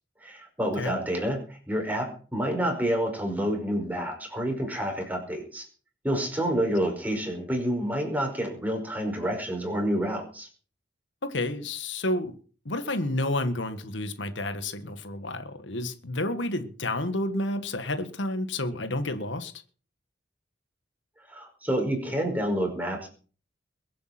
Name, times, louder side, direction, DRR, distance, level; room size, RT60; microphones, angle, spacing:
voice 1, 0.2-5.7 6.0-10.5 21.3-23.1, equal, 10° right, 5.1 m, -28 dB
voice 2, 11.2-12.4 12.6-19.5, left 1 dB, 80° left, 1.6 m, -30 dB
22.0 x 8.5 x 6.0 m
head